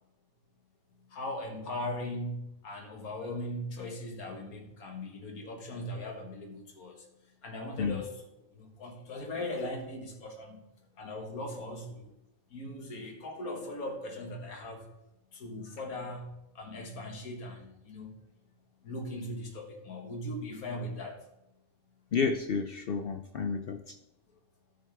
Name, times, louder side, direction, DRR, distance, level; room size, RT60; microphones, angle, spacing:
voice 1, 1.1-7.1 7.4-8.1 8.5-10.6 11.0-12.1 12.5-14.9 15.3-18.1 18.8-21.2, left 1 dB, 90° left, 2 dB, 2.0 m, -39 dB
voice 2, 22.1-24.0, left 5 dB, 65° left, 7 dB, 0.6 m, -31 dB
12.5 x 6.5 x 3.4 m, 0.85 s
omnidirectional pair, 1.5 m